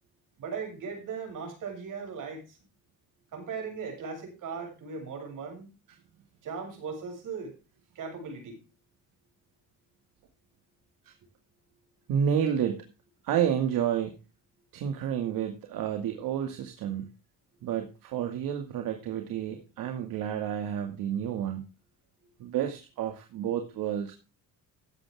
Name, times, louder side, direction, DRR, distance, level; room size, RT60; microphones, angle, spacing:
voice 1, 0.4-2.6 3.3-5.7 6.4-7.5 7.9-8.6, right 5 dB, 65° right, 7.9 m, -38 dB
voice 2, 12.1-12.8 13.2-14.2 14.7-17.1 17.6-21.6 22.4-24.1, right 9 dB, 85° right, 2.2 m, -30 dB
15.0 x 10.5 x 3.6 m
cardioid pair, 115°, 33 cm